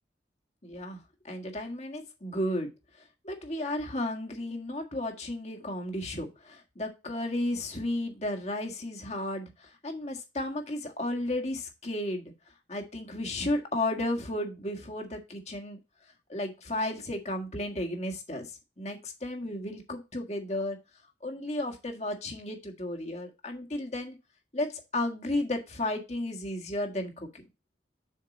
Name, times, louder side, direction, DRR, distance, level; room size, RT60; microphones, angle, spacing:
voice 1, 0.6-1.0 1.2-2.7 3.2-12.3 12.7-15.8 16.3-18.5 18.8-20.8 21.2-24.2 24.5-27.4, left 1 dB, 35° left, 3 dB, 1.7 m, -33 dB
7.5 x 5.8 x 4.1 m, 0.27 s
head